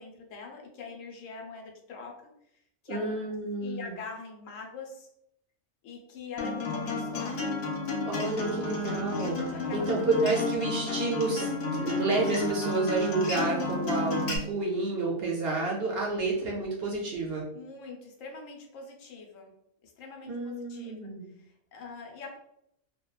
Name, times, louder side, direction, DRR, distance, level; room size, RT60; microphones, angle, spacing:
voice 1, 0.0-2.3 2.8-3.2 3.6-5.1 5.8-7.6 9.5-10.8 17.5-19.5 19.8-20.9 21.4-22.4, left 4 dB, 80° left, 1 dB, 1.0 m, -43 dB
voice 2, 2.9-3.9 8.1-17.4 20.3-21.3, right 3 dB, 65° right, -2 dB, 0.6 m, -30 dB
Acoustic guitar, 6.4-14.4, left 3 dB, 60° left, 0.7 m, -31 dB
2.8 x 2.2 x 2.3 m, 0.75 s
omnidirectional pair, 1.4 m